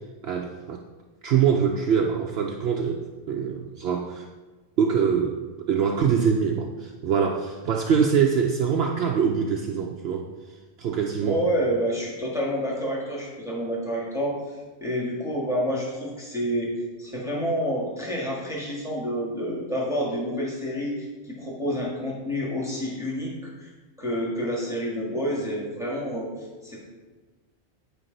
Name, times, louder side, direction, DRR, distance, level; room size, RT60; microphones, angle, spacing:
voice 1, 0.2-0.8 1.2-3.0 3.3-4.3 4.8-5.4 5.7-10.3 10.8-11.4, right 7 dB, 65° right, 2 dB, 0.8 m, -24 dB
voice 2, 11.2-14.4 14.8-16.7 17.0-23.7 24.0-26.3 26.6-26.9, equal, 5° right, -5 dB, 1.5 m, -28 dB
9.2 x 5.1 x 3.8 m, 1.3 s
omnidirectional pair, 1.2 m